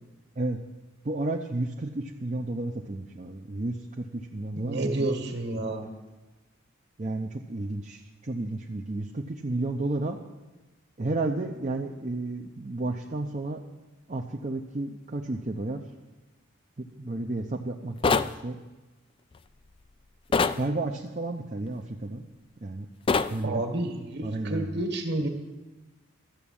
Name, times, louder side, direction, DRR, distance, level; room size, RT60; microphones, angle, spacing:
voice 1, 1.0-5.1 5.4-5.9 7.0-10.2 11.0-13.6 14.1-15.8 16.8-18.6 20.5-22.2 22.6-22.9 23.3-23.6 24.2-24.8, right 2 dB, 35° right, 1 dB, 0.6 m, -32 dB
voice 2, 4.5-5.9 23.4-25.3, right 2 dB, 55° right, 4 dB, 1.7 m, -30 dB
sound 1, 18.0-18.3 20.3-20.6 23.1-23.3, left 4 dB, 25° left, 0.3 m, -23 dB
13.0 x 7.2 x 8.6 m, 1.1 s
head